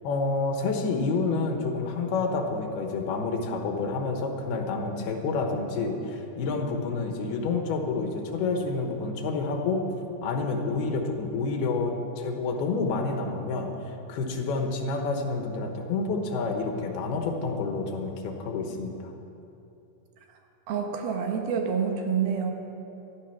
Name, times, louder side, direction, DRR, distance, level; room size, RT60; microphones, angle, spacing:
voice 1, 0.0-9.8 10.2-19.1, left 3 dB, 80° left, 4 dB, 3.2 m, -29 dB
voice 2, 20.7-22.5, right 6 dB, 75° right, 3 dB, 3.1 m, -27 dB
14.5 x 12.5 x 5.8 m, 2.8 s
omnidirectional pair, 4.5 m